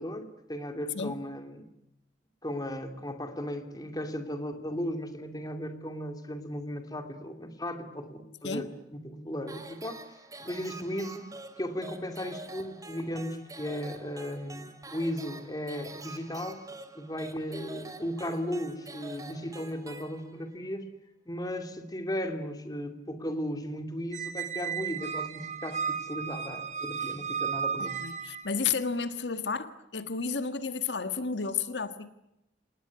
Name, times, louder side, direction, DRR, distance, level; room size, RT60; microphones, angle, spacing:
voice 1, 0.0-1.6 2.4-10.0 10.4-11.3 11.6-16.6 16.9-20.9 21.3-28.0, equal, 20° left, 7 dB, 2.7 m, -36 dB
sound 1, 9.5-20.6, right 2 dB, 20° right, 2.4 m, -46 dB
Squeak, 24.1-28.6, right 6 dB, 45° right, 2.1 m, -34 dB
voice 2, 27.8-32.1, left 5 dB, 80° left, 11 dB, 1.5 m, -32 dB
27.5 x 19.5 x 9.6 m, 0.86 s
head